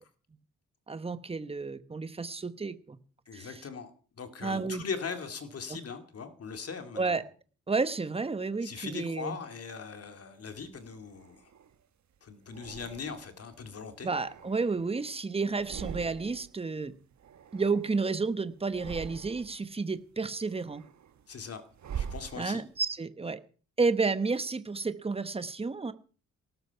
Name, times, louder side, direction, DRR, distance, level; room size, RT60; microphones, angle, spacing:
voice 1, 0.9-3.0 3.3-3.6 4.4-4.8 5.7-5.8 7.0-7.2 7.7-9.4 14.0-16.9 17.5-20.8 22.4-23.4 23.8-25.9, right 4 dB, 20° right, 12 dB, 1.0 m, -31 dB
voice 2, 3.3-3.9 4.2-7.2 8.6-11.4 12.2-14.1 21.3-21.6 21.9-22.6, left 5 dB, 50° left, 7 dB, 2.2 m, -40 dB
sound 1, 10.6-11.8 12.5-13.4 13.9-15.1 15.5-16.6 16.8-18.2 18.6-19.7 20.1-22.9, right 8 dB, 65° right, 1.3 m, -44 dB
18.5 x 12.5 x 5.7 m, 0.41 s
wide cardioid pair, 125°, 30 cm